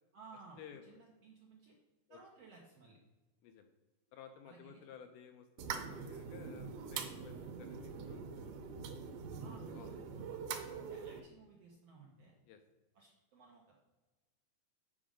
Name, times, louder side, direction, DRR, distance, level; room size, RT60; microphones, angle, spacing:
voice 1, 0.1-1.7 2.1-3.0 4.4-4.8 9.4-10.4 10.7-12.3 12.9-13.9, right 4 dB, 70° right, -1 dB, 1.5 m, -59 dB
voice 2, 3.4-3.7 4.1-8.6 9.7-9.9 12.5-12.6, left 8 dB, 80° left, 6 dB, 1.9 m, -55 dB
sound 1, 5.6-11.2, right 6 dB, 90° right, 2.7 m, -44 dB
8.7 x 5.1 x 5.0 m, 1.2 s
omnidirectional pair, 4.1 m